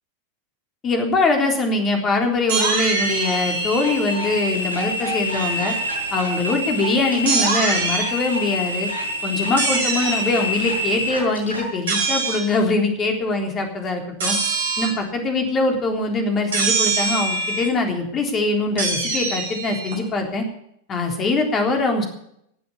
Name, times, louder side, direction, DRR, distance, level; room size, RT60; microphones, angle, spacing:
voice 1, 0.8-5.7 6.1-8.9 9.2-14.4 14.8-20.4 20.9-22.0, left 3 dB, 25° left, 3 dB, 3.6 m, -22 dB
sound 1, 2.5-4.5 7.3-8.1 9.6-10.2 11.9-12.5 14.2-15.0 16.5-17.7 18.8-20.0, right 4 dB, 60° right, 3.8 m, -24 dB
sound 2, 3.0-11.7, left 1 dB, 85° left, 5.9 m, -27 dB
19.0 x 7.8 x 8.4 m, 0.73 s
figure-of-eight pair, 90°, 0 cm